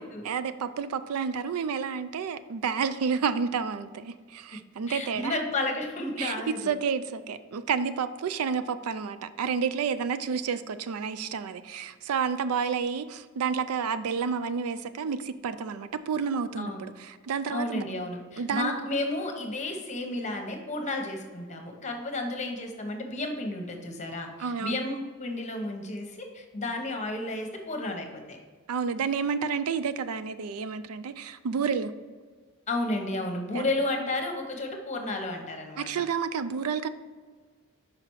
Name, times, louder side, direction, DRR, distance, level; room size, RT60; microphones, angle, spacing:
voice 1, 0.2-5.3 6.2-17.8 18.4-18.7 24.4-24.9 28.7-31.9 33.5-33.6 35.8-36.9, right 6 dB, 80° right, 12 dB, 0.4 m, -30 dB
voice 2, 4.9-6.6 16.6-16.8 17.5-28.4 32.7-36.0, left 2 dB, 35° left, 3 dB, 0.9 m, -32 dB
5.8 x 5.0 x 4.6 m, 1.5 s
head